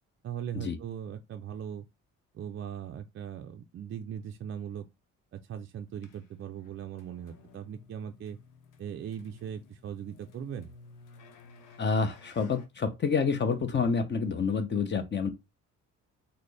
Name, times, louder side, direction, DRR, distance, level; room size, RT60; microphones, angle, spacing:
voice 1, 0.2-1.8 2.3-4.9 5.3-8.4 8.8-10.7, right 9 dB, 45° right, 0.4 m, -39 dB
sound 1, 6.0-12.7, left 4 dB, 90° left, 0.8 m, -55 dB
voice 2, 11.8-15.3, left 5 dB, 35° left, 0.8 m, -28 dB
3.9 x 2.1 x 3.3 m
cardioid pair, 90°, 30 cm